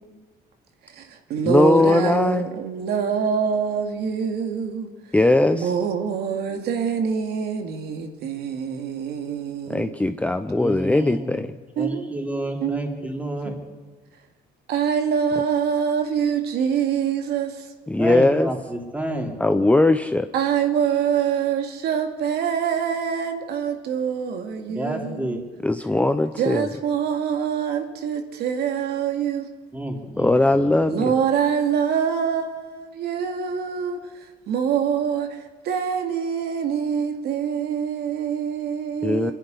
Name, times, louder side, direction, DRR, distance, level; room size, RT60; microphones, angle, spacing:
voice 1, 0.8-4.9 5.5-9.9 11.8-12.0 12.6-13.5 14.7-17.7 20.3-25.4 26.4-29.5 30.9-39.3, right 7 dB, 75° right, 2.4 m, -25 dB
voice 2, 1.4-2.5 5.1-5.6 9.7-11.5 17.9-18.5 19.4-20.3 25.6-26.7 30.2-31.1 39.0-39.3, left 2 dB, 10° left, 0.7 m, -19 dB
voice 3, 10.6-11.4 11.8-13.7 18.0-19.4 24.7-25.4 29.7-30.7, right 1 dB, 10° right, 3.5 m, -30 dB
25.5 x 11.0 x 9.8 m
cardioid pair, 110°, 17 cm